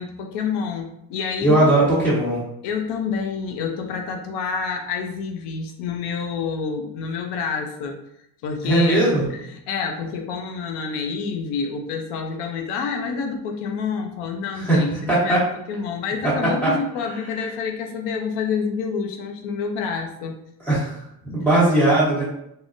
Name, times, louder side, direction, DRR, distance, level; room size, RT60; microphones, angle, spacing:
voice 1, 0.0-1.7 2.6-8.0 8.4-9.0 9.3-20.4, left 5 dB, 85° left, 3 dB, 0.6 m, -28 dB
voice 2, 1.4-2.4 8.6-9.2 14.6-14.8 15.1-15.4 16.6-16.7 20.7-20.9 21.2-22.2, right 2 dB, 5° left, -10 dB, 1.1 m, -18 dB
3.6 x 2.0 x 2.5 m, 0.78 s
cardioid pair, 175°, 39 cm